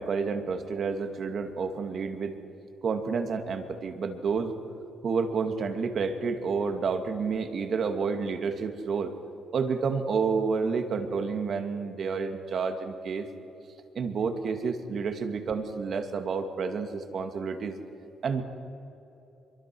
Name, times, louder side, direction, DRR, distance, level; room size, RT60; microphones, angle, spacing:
voice 1, 0.0-2.4 2.8-4.5 5.0-9.1 9.5-13.3 14.0-17.8 18.2-18.4, right 5 dB, 55° right, 7 dB, 2.3 m, -29 dB
24.0 x 23.0 x 6.2 m, 3.0 s
cardioid pair, 90°, 0 cm